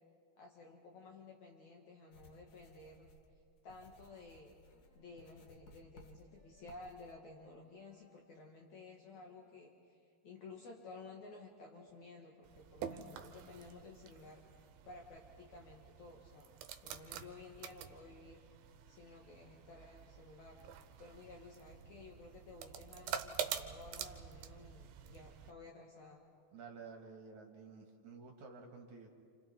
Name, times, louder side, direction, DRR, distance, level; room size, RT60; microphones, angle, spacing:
voice 1, 0.4-3.1 3.6-4.5 4.9-16.5 16.8-18.4 18.9-26.2, left 3 dB, 55° left, 0 dB, 2.8 m, -54 dB
sound 1, 2.1-7.1, left 2 dB, 80° left, 1.0 m, -62 dB
sound 2, 4.7-5.2 6.1-6.8 7.7-8.1 9.1-9.6 10.5-11.0 11.7-12.1, equal, 25° left, 6.6 m, -71 dB
sound 3, 12.4-25.5, right 9 dB, 75° right, 2.6 m, -47 dB
voice 2, 26.5-29.1, right 4 dB, 55° right, 2 dB, 3.0 m, -52 dB
28.5 x 28.5 x 4.5 m, 2.2 s
omnidirectional pair, 4.3 m